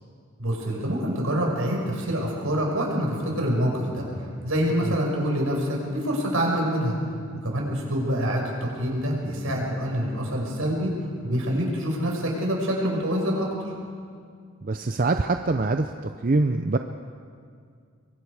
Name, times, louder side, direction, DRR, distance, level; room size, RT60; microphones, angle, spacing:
voice 1, 0.4-4.0 4.4-7.0 7.4-10.9 11.2-13.5, equal, 70° right, -1 dB, 5.5 m, -26 dB
voice 2, 14.6-16.8, right 3 dB, 40° right, 7 dB, 0.5 m, -24 dB
25.0 x 23.0 x 4.8 m, 2.2 s
head